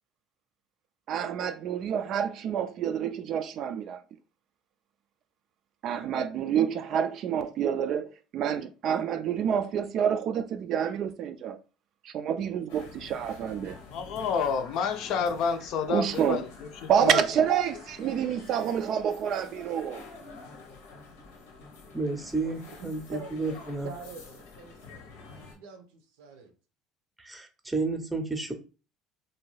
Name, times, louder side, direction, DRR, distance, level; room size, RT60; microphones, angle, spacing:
voice 1, 1.1-4.0 5.8-11.6 12.0-13.8 15.9-16.4 16.9-20.0, right 8 dB, 55° right, 0.3 m, -28 dB
sound 1, 12.7-25.5, left 4 dB, 90° left, 0.8 m, -48 dB
voice 2, 13.9-16.4 16.8-17.2, left 6 dB, 65° left, 0.5 m, -29 dB
voice 3, 21.9-23.9 27.2-28.5, right 3 dB, 10° right, 0.6 m, -31 dB
voice 4, 23.8-26.5, right 4 dB, 85° right, 0.6 m, -45 dB
2.5 x 2.3 x 3.1 m
supercardioid pair, 95°, 0 cm